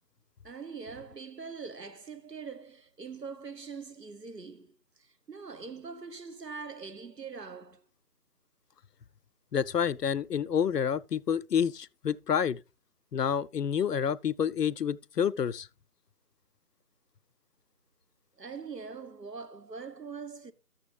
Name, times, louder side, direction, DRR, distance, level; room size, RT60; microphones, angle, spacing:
voice 1, 0.4-7.9 18.4-20.5, right 5 dB, 90° right, 1.4 m, -43 dB
voice 2, 9.5-12.6 13.1-15.7, left 8 dB, 80° left, 0.6 m, -28 dB
13.0 x 7.1 x 3.4 m
figure-of-eight pair, 175°, 48 cm